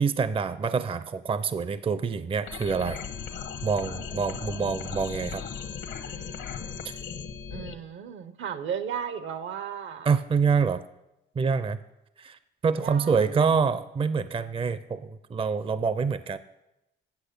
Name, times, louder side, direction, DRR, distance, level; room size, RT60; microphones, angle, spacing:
voice 1, 0.0-3.0 3.6-5.4 6.8-7.0 10.0-10.8 11.4-11.8 12.2-16.4, right 5 dB, 25° right, 14 dB, 0.5 m, -26 dB
sound 1, 2.5-7.8, left 7 dB, 70° left, 1.0 m, -37 dB
voice 2, 7.5-10.1 12.8-13.6, right 8 dB, 75° right, 12 dB, 0.9 m, -35 dB
8.2 x 8.2 x 6.8 m, 0.91 s
cardioid pair, 90°, 20 cm